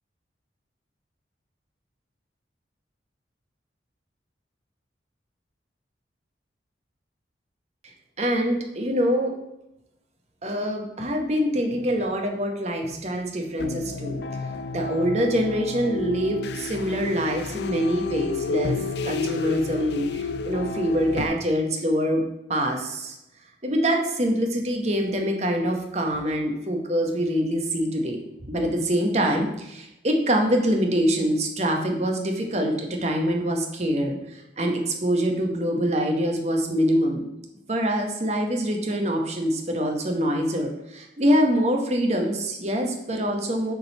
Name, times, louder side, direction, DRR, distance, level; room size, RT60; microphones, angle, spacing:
voice 1, 8.2-9.3 10.4-14.2 14.7-18.8 19.0-22.2 22.5-23.2 23.6-28.2 28.5-37.2 37.7-43.7, equal, 35° right, 3 dB, 1.0 m, -25 dB
sound 1, 13.6-21.3, left 4 dB, 65° left, 0.4 m, -31 dB
6.9 x 3.9 x 5.3 m, 0.86 s
head